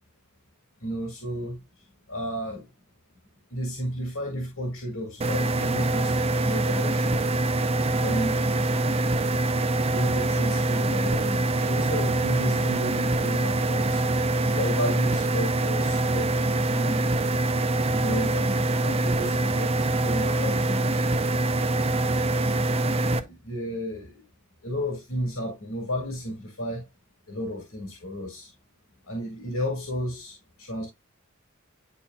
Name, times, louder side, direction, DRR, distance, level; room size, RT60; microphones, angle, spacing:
voice 1, 0.8-2.6 3.5-7.2 7.9-8.3 9.9-14.0 14.4-16.3 16.6-17.1 17.8-21.1 23.0-24.2 24.6-26.9 27.3-28.5 29.1-30.9, equal, 85° left, 2.0 m, -33 dB
sound 1, 5.2-23.2, right 2 dB, 30° right, 0.6 m, -24 dB
10.0 x 4.2 x 2.2 m
head